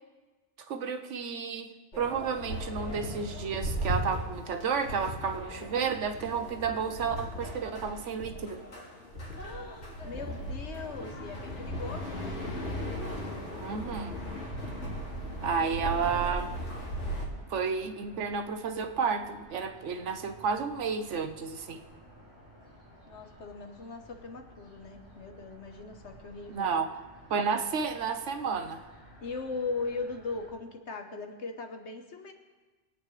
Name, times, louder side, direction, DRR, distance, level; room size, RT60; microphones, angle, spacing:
voice 1, 0.6-8.6 13.6-14.2 15.4-16.5 17.5-21.8 26.5-26.9 27.3-28.9, right 6 dB, 85° right, 7 dB, 1.2 m, -31 dB
sound 1, 1.9-17.3, equal, 90° left, 2.6 m, -37 dB
voice 2, 9.3-12.4 23.1-26.7 29.2-32.3, left 4 dB, 70° left, 4 dB, 1.4 m, -39 dB
sound 2, 11.2-30.5, equal, 30° right, 5.1 m, -54 dB
21.5 x 8.6 x 3.3 m, 1.2 s
omnidirectional pair, 1.2 m